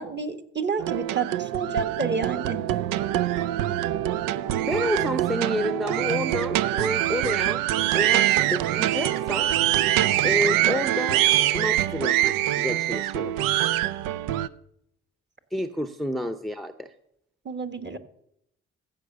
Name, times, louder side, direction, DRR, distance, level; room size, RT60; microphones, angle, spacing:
voice 1, 0.0-2.6 17.4-18.0, right 5 dB, 30° right, 8 dB, 1.4 m, -29 dB
sound 1, 0.8-14.5, right 13 dB, 70° right, 0.5 m, -24 dB
voice 2, 4.5-7.6 7.9-9.5 10.2-11.2 11.5-13.4 15.5-16.9, left 1 dB, ahead, 8 dB, 0.7 m, -30 dB
15.5 x 5.2 x 6.6 m, 0.75 s
hypercardioid pair, 45°, 34 cm